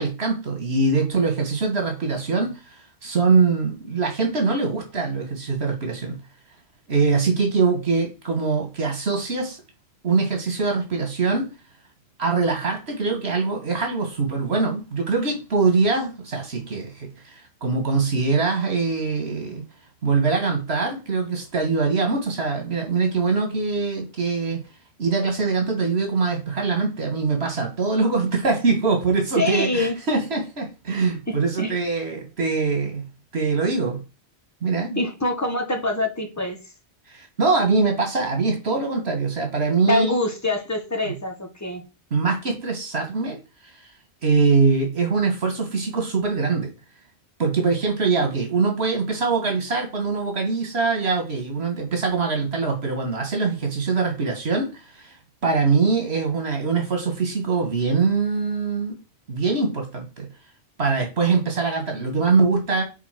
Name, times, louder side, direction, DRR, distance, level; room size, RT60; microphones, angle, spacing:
voice 1, 0.0-6.2 6.9-9.6 10.0-11.5 12.2-19.6 20.0-24.6 25.0-33.1 33.3-34.0 34.6-35.0 37.1-40.1 42.1-43.4 43.6-43.9 44.2-46.7 47.4-55.2 55.4-59.0 59.3-60.3 60.8-62.8, right 4 dB, 75° right, 2.0 m, -23 dB
voice 2, 29.3-29.9 31.3-31.8 34.9-36.6 39.9-41.8, left 2 dB, 15° left, 1.4 m, -25 dB
5.9 x 4.1 x 5.9 m
omnidirectional pair, 1.1 m